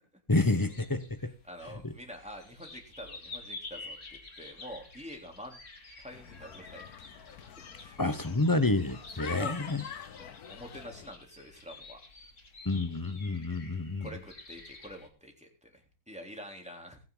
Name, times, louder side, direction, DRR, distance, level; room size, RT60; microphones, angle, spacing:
voice 1, 0.3-1.3 8.0-9.8 12.6-14.1, left 2 dB, 15° left, 0.8 m, -29 dB
sound 1, 0.5-15.1, left 3 dB, 55° left, 2.8 m, -50 dB
voice 2, 1.2-5.6 6.0-6.8 7.8-8.0 9.4-9.6 10.2-12.0 14.0-15.8 16.1-17.0, equal, 5° right, 3.4 m, -46 dB
sound 2, 6.1-11.1, left 8 dB, 80° left, 1.5 m, -45 dB
19.5 x 10.0 x 3.9 m
omnidirectional pair, 1.6 m